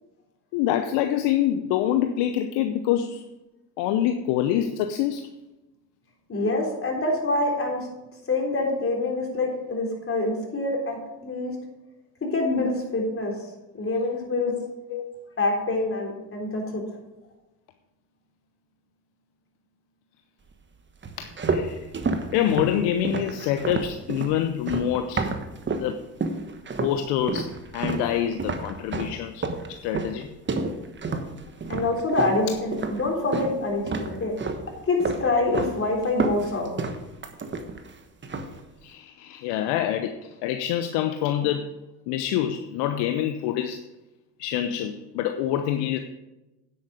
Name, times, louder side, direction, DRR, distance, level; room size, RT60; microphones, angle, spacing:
voice 1, 0.5-3.3 3.8-5.3 14.9-15.1 21.2-21.9 22.3-25.3 25.8-26.0 26.8-30.3 38.8-41.8 42.1-43.8 44.4-46.0, left 11 dB, 60° left, 8 dB, 0.8 m, -26 dB
voice 2, 6.3-7.9 8.3-11.5 12.2-13.4 13.7-14.5 15.4-16.8 31.7-34.4 34.9-36.7, left 2 dB, 25° left, 0 dB, 3.6 m, -26 dB
sound 1, 21.0-25.9 26.2-27.0 27.3-33.6 33.9-34.7 35.0-35.8 36.0-37.9 38.2-38.6, right 4 dB, 25° right, 1.3 m, -29 dB
9.8 x 8.1 x 5.0 m, 1.0 s
hypercardioid pair, 70°, 47 cm